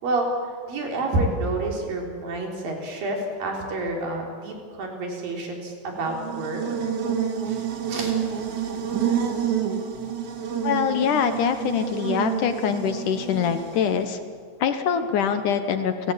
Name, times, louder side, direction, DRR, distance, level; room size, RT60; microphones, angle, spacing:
voice 1, 0.0-6.6 7.5-7.6 7.9-8.2, right 2 dB, 55° right, 0 dB, 5.3 m, -28 dB
Buzz, 6.0-14.1, right 8 dB, 85° right, 4.4 m, -28 dB
voice 2, 10.6-14.2 14.6-16.1, left 7 dB, 70° left, 8 dB, 2.0 m, -24 dB
30.0 x 17.0 x 8.5 m, 2.1 s
omnidirectional pair, 4.9 m